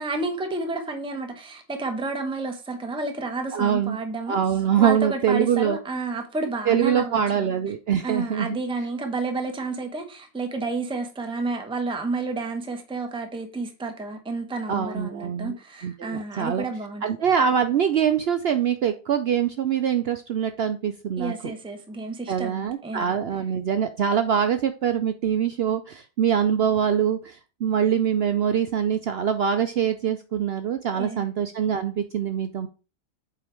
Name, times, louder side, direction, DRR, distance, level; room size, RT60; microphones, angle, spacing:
voice 1, 0.0-4.4 4.8-7.5 8.0-17.0 21.2-23.1 30.9-31.3, right 3 dB, 5° right, 0.9 m, -31 dB
voice 2, 3.5-4.0 4.3-5.8 6.7-8.6 14.7-15.5 15.8-16.6 17.0-21.3 22.3-32.7, right 8 dB, 65° right, 0.6 m, -24 dB
8.4 x 3.6 x 4.5 m
omnidirectional pair, 1.5 m